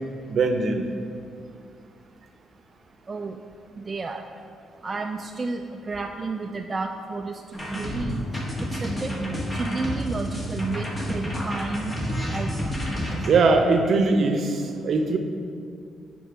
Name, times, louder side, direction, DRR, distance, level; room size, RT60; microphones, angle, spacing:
voice 1, 0.3-0.9 13.3-15.2, right 3 dB, 55° right, 6 dB, 0.7 m, -21 dB
voice 2, 3.8-4.2 4.8-7.4 7.7-8.3 8.7-9.1 9.5-12.0 12.3-12.7, right 3 dB, 30° right, 3 dB, 0.4 m, -32 dB
sound 1, 7.5-13.3, equal, 30° left, 1.5 m, -29 dB
6.7 x 5.2 x 5.2 m, 2.3 s
cardioid pair, 90°, 0 cm